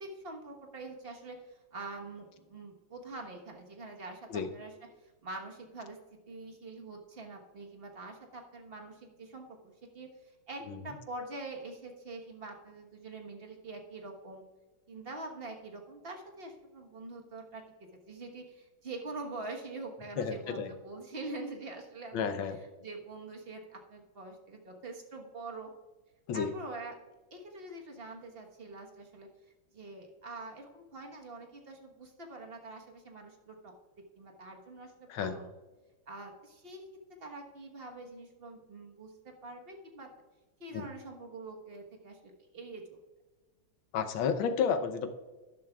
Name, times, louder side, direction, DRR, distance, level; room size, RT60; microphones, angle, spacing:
voice 1, 0.0-4.7 5.0-6.0 6.3-14.4 14.9-17.6 18.1-25.7 26.3-26.9 27.3-29.3 29.7-33.7 34.2-35.5 36.1-36.8 37.2-40.1 40.6-43.0, right 2 dB, 35° right, 2 dB, 1.2 m, -45 dB
voice 2, 20.2-20.7 22.1-22.6 26.3-26.5 35.1-35.4 40.7-40.8 43.9-45.1, left 6 dB, 80° left, 8 dB, 1.6 m, -31 dB
12.5 x 10.5 x 2.3 m, 1.2 s
omnidirectional pair, 2.2 m